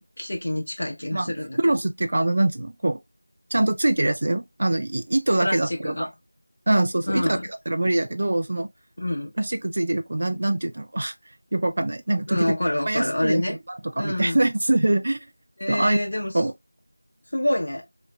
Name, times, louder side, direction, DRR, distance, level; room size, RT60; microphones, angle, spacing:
voice 1, 0.2-1.6 5.4-6.1 7.1-7.5 9.0-9.3 12.3-13.6 14.0-14.4 15.6-16.3 17.3-17.8, left 1 dB, 45° left, 1.1 m, -26 dB
voice 2, 1.6-3.0 3.5-6.1 6.7-7.4 7.7-8.7 9.4-11.1 11.5-12.5 12.8-15.2 15.7-16.0 16.3-16.5, right 1 dB, 40° right, 0.4 m, -23 dB
3.1 x 3.0 x 2.3 m
figure-of-eight pair, 175°, 0 cm